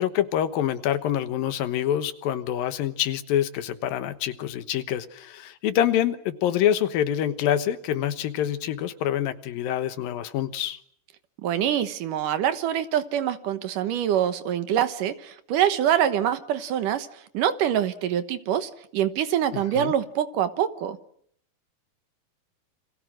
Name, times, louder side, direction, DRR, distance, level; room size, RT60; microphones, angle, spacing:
voice 1, 0.0-10.8 19.5-19.9, left 11 dB, 80° left, 12 dB, 3.0 m, -26 dB
voice 2, 11.4-21.0, right 10 dB, 70° right, 11 dB, 2.7 m, -25 dB
29.5 x 26.5 x 6.4 m, 0.65 s
omnidirectional pair, 4.0 m